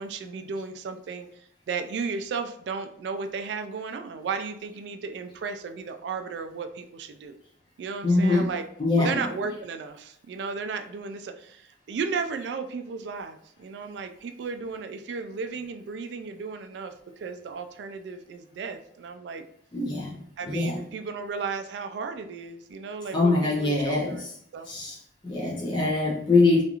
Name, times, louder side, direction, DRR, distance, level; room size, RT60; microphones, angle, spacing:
voice 1, 0.0-7.4 7.8-8.6 9.0-19.4 20.4-24.2 24.5-24.7, right 5 dB, 70° right, 7 dB, 0.3 m, -34 dB
voice 2, 8.0-9.5 19.7-20.8 23.1-24.3 24.6-25.0 25.2-26.6, left 2 dB, 25° left, -5 dB, 0.4 m, -24 dB
2.4 x 2.3 x 2.9 m, 0.67 s
head